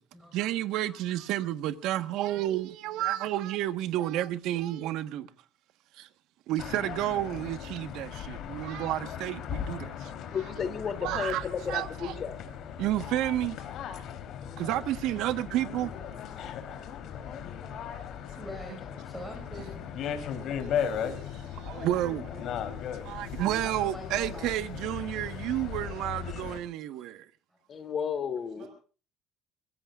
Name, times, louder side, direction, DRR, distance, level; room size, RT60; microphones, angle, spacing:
voice 1, 0.3-5.3 5.9-6.1 6.5-10.3 11.0-12.1 12.8-13.6 14.6-15.9 20.4-22.2 23.0-27.2, right 13 dB, 65° right, 1.3 m, -31 dB
voice 2, 0.9-1.3 18.4-19.8 23.6-24.7 27.0-27.1 27.5-27.6, left 1 dB, 5° right, 5.4 m, -45 dB
sound 1, 6.6-26.6, left 8 dB, 50° left, 3.6 m, -37 dB
voice 3, 10.3-12.4 14.4-14.8 26.3-26.4 27.7-28.7, left 6 dB, 30° left, 2.9 m, -34 dB
voice 4, 14.8-18.4 21.6-22.6 28.6-28.7, right 5 dB, 45° right, 5.7 m, -52 dB
sound 2, 20.7-25.9, left 7 dB, 80° left, 4.9 m, -51 dB
24.5 x 23.5 x 2.5 m
cardioid pair, 165°, 0 cm